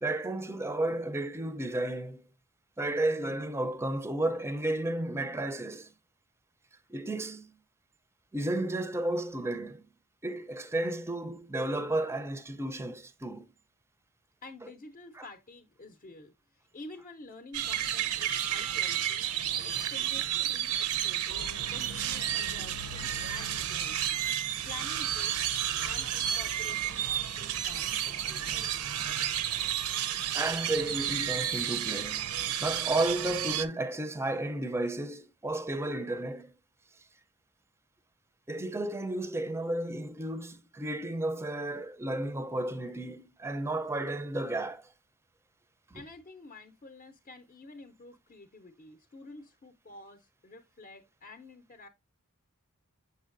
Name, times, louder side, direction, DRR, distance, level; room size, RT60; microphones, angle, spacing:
voice 1, 0.0-2.2 2.8-5.9 6.9-7.5 8.3-9.8 10.2-13.4 15.2-15.3 30.3-32.2 32.6-36.5 38.5-44.9 45.9-46.0, right 2 dB, 10° right, 0.5 m, -32 dB
voice 2, 14.4-16.3 16.7-24.2 24.7-25.5 25.8-28.7 45.9-51.9, left 3 dB, 35° left, 0.6 m, -49 dB
sound 1, 17.5-33.6, right 10 dB, 80° right, 0.6 m, -31 dB
7.0 x 5.4 x 2.5 m
head